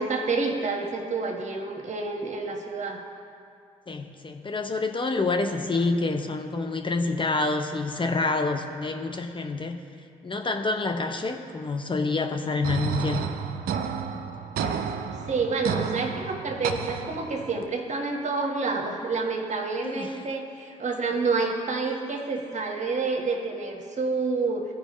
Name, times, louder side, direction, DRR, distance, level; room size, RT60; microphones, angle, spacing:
voice 1, 0.0-3.0 15.3-24.7, right 4 dB, 45° right, 2 dB, 1.4 m, -28 dB
voice 2, 3.9-9.8 10.2-13.3 19.8-20.2, left 3 dB, 30° left, 4 dB, 0.7 m, -27 dB
sound 1, 12.6-17.6, right 7 dB, 65° right, 0.6 m, -31 dB
15.0 x 5.1 x 3.1 m, 2.4 s
hypercardioid pair, 45°, 17 cm